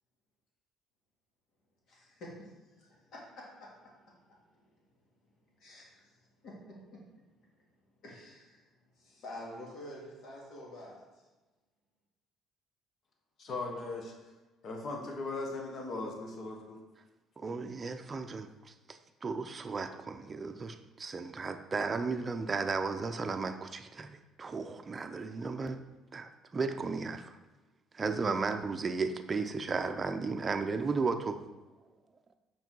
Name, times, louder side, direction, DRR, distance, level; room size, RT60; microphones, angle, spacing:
voice 1, 1.9-2.5 2.8-4.0 4.3-4.4 5.6-6.1 6.4-7.0 8.0-8.6 9.0-11.0, left 1 dB, 65° left, -4 dB, 2.3 m, -48 dB
voice 2, 13.4-14.1 14.6-16.8, left 3 dB, 50° left, 1 dB, 1.3 m, -38 dB
voice 3, 17.4-25.8 26.1-27.3 27.9-31.4, right 4 dB, 30° right, 7 dB, 0.6 m, -35 dB
5.7 x 4.7 x 4.6 m, 1.2 s
cardioid pair, 95°, 0 cm